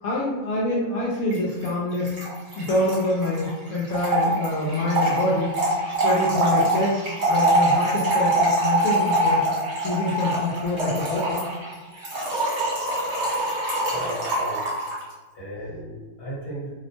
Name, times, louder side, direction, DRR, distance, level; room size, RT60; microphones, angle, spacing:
voice 1, 0.0-2.3 2.6-5.5 5.9-9.4 9.8-11.5, left 2 dB, 75° left, -5 dB, 1.0 m, -26 dB
Trickle dribble / Fill (with liquid), 1.3-1.4 1.6-1.7 1.9-15.0, right 1 dB, 50° right, 1.3 m, -24 dB
voice 2, 13.9-14.6 15.3-16.7, right 1 dB, 50° left, -6 dB, 1.3 m, -36 dB
2.8 x 2.1 x 2.8 m, 1.3 s
omnidirectional pair, 1.5 m